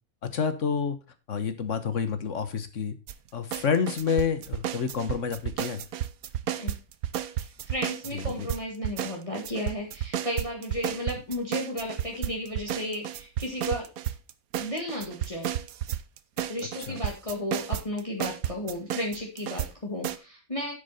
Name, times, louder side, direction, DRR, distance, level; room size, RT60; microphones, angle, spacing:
voice 1, 0.2-1.0 1.3-3.0 3.3-5.8 8.1-8.5 16.8-17.0, left 6 dB, 60° left, 11 dB, 1.6 m, -29 dB
sound 1, 3.1-3.2 3.5-8.6 8.8-19.7 20.0-20.2, right 11 dB, 90° right, 1.2 m, -32 dB
voice 2, 7.4-13.9 14.6-15.5 16.5-20.7, left 1 dB, 25° left, -1 dB, 2.0 m, -34 dB
10.0 x 7.6 x 4.2 m, 0.28 s
omnidirectional pair, 1.5 m